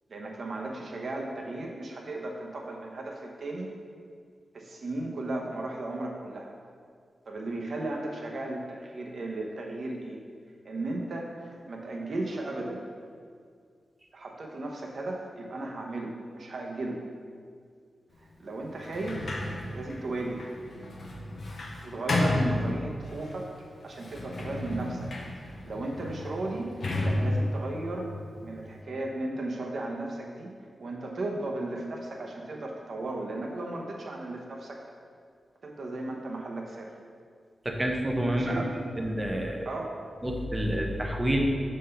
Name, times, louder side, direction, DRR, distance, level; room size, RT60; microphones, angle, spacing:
voice 1, 0.1-3.7 4.5-6.5 7.3-10.2 10.6-12.8 14.1-17.0 18.2-19.3 19.7-20.5 21.8-23.5 23.8-25.1 25.4-26.7 27.0-28.1 28.4-30.5 30.8-34.8 35.6-36.9 38.4-38.7 39.6-40.0, right 2 dB, 50° right, 0 dB, 0.8 m, -35 dB
Sliding door, 18.8-23.3 23.9-28.8, left 1 dB, 50° left, 0.7 m, -32 dB
voice 2, 37.6-38.6 39.0-39.7 40.2-41.4, right 1 dB, 15° right, 1 dB, 0.6 m, -28 dB
6.4 x 3.9 x 5.5 m, 2.2 s
wide cardioid pair, 180°, 0 cm